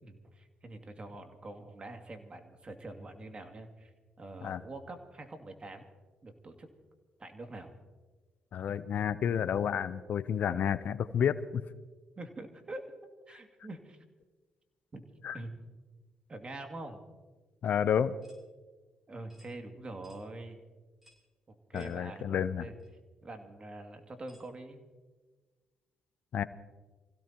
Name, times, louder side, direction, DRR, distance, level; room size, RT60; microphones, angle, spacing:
voice 1, 0.0-5.9 6.2-6.7 7.2-7.7 12.2-12.9 13.3-14.0 14.9-15.0 15.3-15.5 16.3-17.0 19.1-20.6 21.7-22.7 23.2-24.8, right 2 dB, 35° right, 5 dB, 2.4 m, -45 dB
voice 2, 8.5-11.6 15.2-15.4 17.6-18.2 21.7-22.7 26.3-26.4, left 8 dB, 65° left, 15 dB, 0.6 m, -30 dB
sound 1, 18.2-18.4 19.3-19.5 20.0-20.2 21.0-21.3 21.7-22.0 22.8-22.9 24.3-24.5, left 1 dB, 5° right, 5.6 m, -62 dB
26.5 x 16.5 x 3.0 m, 1.3 s
supercardioid pair, 60°, 3 cm